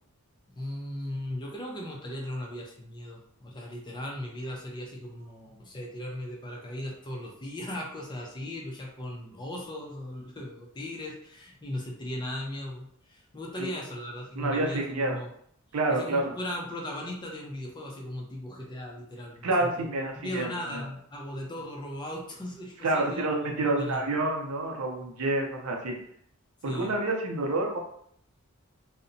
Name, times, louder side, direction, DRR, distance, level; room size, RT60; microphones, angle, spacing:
voice 1, 0.6-15.3 15.9-19.9 20.2-23.3 23.5-24.0 26.6-27.0, left 1 dB, 20° left, -1 dB, 0.4 m, -37 dB
voice 2, 14.4-15.2 15.7-16.3 19.4-20.8 22.8-26.0 26.6-27.8, right 2 dB, 85° right, 1 dB, 0.5 m, -28 dB
2.7 x 2.1 x 2.6 m, 0.66 s
head